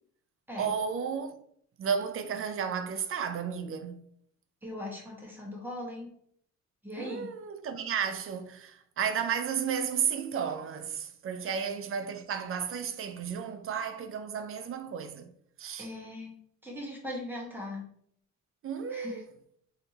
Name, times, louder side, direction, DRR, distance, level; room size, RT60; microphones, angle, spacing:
voice 1, 0.6-1.3 1.8-4.0 7.0-15.3 15.6-15.9 18.6-19.2, right 7 dB, 45° right, 0.4 m, -33 dB
voice 2, 4.6-6.1 6.8-7.3 11.4-11.7 15.8-16.3 16.6-17.9 18.9-19.2, left 1 dB, 5° right, 1.3 m, -39 dB
3.3 x 2.8 x 2.8 m
cardioid pair, 90°, 30 cm